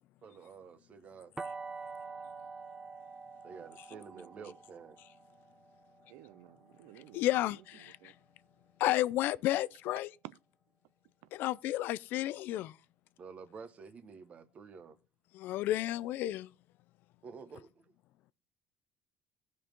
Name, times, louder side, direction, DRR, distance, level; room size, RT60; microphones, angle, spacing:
voice 1, 0.2-1.3 3.4-5.0 13.2-15.0 17.2-17.9, right 5 dB, 40° right, 1.1 m, -50 dB
sound 1, 1.4-7.2, right 4 dB, 20° right, 0.6 m, -47 dB
voice 2, 3.9-4.5 6.1-7.3 8.0-8.1, right 16 dB, 85° right, 0.4 m, -56 dB
voice 3, 7.1-8.0 8.8-10.1 11.3-12.7 15.3-16.5, left 15 dB, 65° left, 0.4 m, -32 dB
16.0 x 5.3 x 3.6 m
cardioid pair, 115°, 4 cm